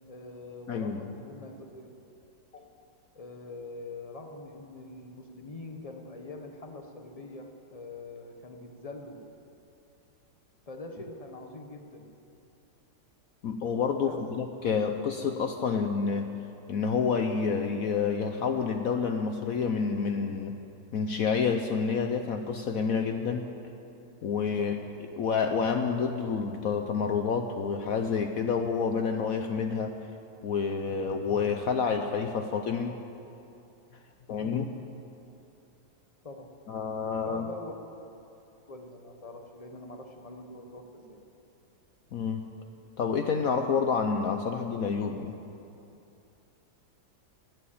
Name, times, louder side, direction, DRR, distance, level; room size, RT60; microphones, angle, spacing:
voice 1, 0.1-1.9 2.5-2.7 3.1-9.2 10.7-12.1 14.0-14.3 24.6-24.9 34.4-34.9 36.2-36.6 37.2-37.7 38.7-41.2, left 2 dB, 25° left, 4 dB, 0.8 m, -44 dB
voice 2, 0.7-1.0 13.4-16.3 16.7-20.6 20.9-23.5 24.2-24.8 25.2-30.0 30.4-33.0 34.3-34.6 36.7-37.5 42.1-42.5 43.0-45.3, left 5 dB, 65° left, 5 dB, 0.9 m, -28 dB
12.5 x 11.0 x 8.5 m, 2.7 s
omnidirectional pair, 2.1 m